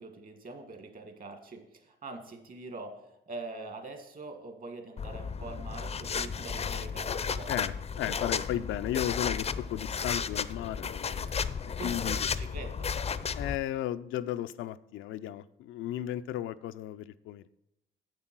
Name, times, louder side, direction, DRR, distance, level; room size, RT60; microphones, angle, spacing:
voice 1, 0.0-7.5 11.3-11.5 11.8-12.9, right 3 dB, 45° right, 6 dB, 1.8 m, -44 dB
sound 1, 5.0-13.6, left 6 dB, 30° left, 0.5 m, -33 dB
voice 2, 7.5-12.2 13.3-17.5, left 12 dB, 85° left, 12 dB, 0.4 m, -35 dB
7.5 x 7.2 x 6.0 m, 0.86 s
cardioid pair, 90°, 20 cm